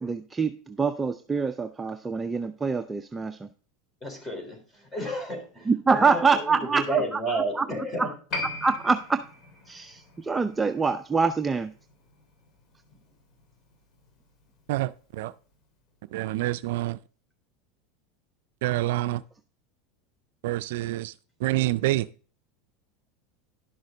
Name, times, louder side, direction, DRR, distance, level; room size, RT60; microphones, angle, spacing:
voice 1, 0.0-3.4 5.7-6.8 7.1-7.2 7.6-7.7 8.0-8.1 8.6-9.2 9.7-11.7, right 4 dB, 15° right, 0.5 m, -25 dB
voice 2, 4.0-8.1, right 2 dB, 15° left, 4.0 m, -31 dB
Piano, 8.3-15.3 15.5-15.6, left 2 dB, 45° left, 2.6 m, -41 dB
voice 3, 14.7-15.3 16.1-17.0 18.6-19.2 20.4-21.1 21.4-22.1, right 16 dB, 75° right, 0.4 m, -27 dB
11.5 x 6.4 x 3.9 m
supercardioid pair, 110°, 0 cm